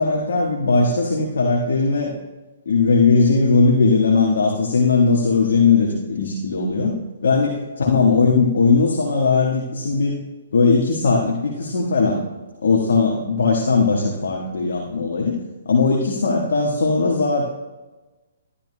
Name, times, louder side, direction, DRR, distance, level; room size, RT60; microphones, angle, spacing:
voice 1, 0.0-2.1 2.6-7.0 7.2-10.1 10.5-12.2 12.6-17.4, left 4 dB, 75° left, -1 dB, 1.4 m, -18 dB
13.5 x 11.5 x 2.2 m, 1.2 s
hypercardioid pair, 135°, 0 cm